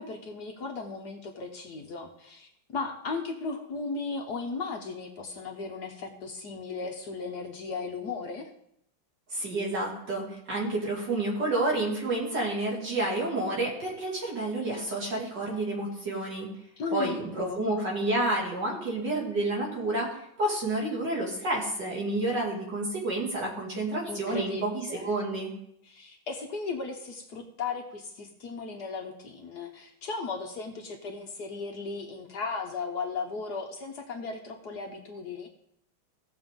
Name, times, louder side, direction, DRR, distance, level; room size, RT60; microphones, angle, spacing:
voice 1, 0.0-8.5 16.8-17.7 24.0-24.6 24.9-25.1 25.8-35.5, left 4 dB, 55° left, 2 dB, 1.5 m, -36 dB
voice 2, 9.3-16.5 16.9-25.5, right 2 dB, 55° right, -2 dB, 3.1 m, -30 dB
16.5 x 7.0 x 3.8 m, 0.74 s
omnidirectional pair, 2.2 m